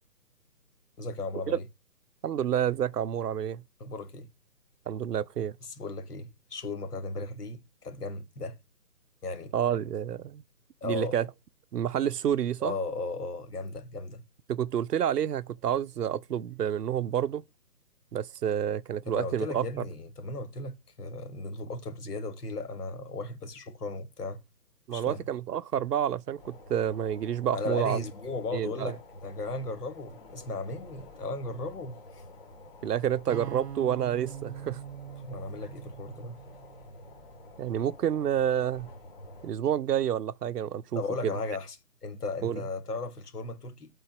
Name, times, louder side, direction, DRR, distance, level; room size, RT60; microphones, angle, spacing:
voice 1, 1.0-1.6 3.8-4.3 5.6-8.6 9.2-9.5 10.8-11.2 12.6-14.2 19.1-24.4 24.9-25.2 27.5-32.2 35.2-36.4 41.0-41.8 42.0-43.9, left 3 dB, 70° left, 1.8 m, -36 dB
voice 2, 2.2-3.6 4.9-5.6 9.5-10.4 10.8-11.3 11.7-12.8 14.5-17.4 18.1-19.9 24.9-28.0 28.5-28.9 32.8-34.8 37.6-38.9 39.4-41.3 42.4-42.6, right 9 dB, 75° right, 0.6 m, -29 dB
sound 1, 26.4-39.5, left 2 dB, 35° left, 2.2 m, -49 dB
sound 2, 33.3-37.4, right 10 dB, 40° right, 0.9 m, -43 dB
8.1 x 3.9 x 5.8 m
hypercardioid pair, 165°, 48 cm